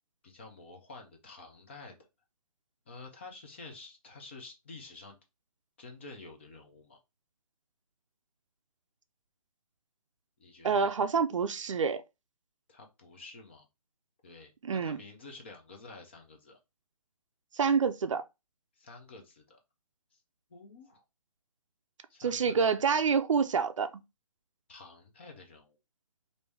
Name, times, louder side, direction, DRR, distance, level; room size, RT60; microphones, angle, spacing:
voice 1, 0.2-2.0 2.9-5.2 5.8-7.0 10.4-10.9 12.7-13.7 14.2-16.6 18.8-19.6 20.5-21.0 22.1-22.6 24.7-25.8, left 3 dB, 20° left, 0.4 m, -49 dB
voice 2, 10.6-12.0 14.6-15.0 17.6-18.2 22.2-23.9, right 6 dB, 55° right, 0.4 m, -27 dB
3.1 x 2.6 x 3.3 m
hypercardioid pair, 160°, 19 cm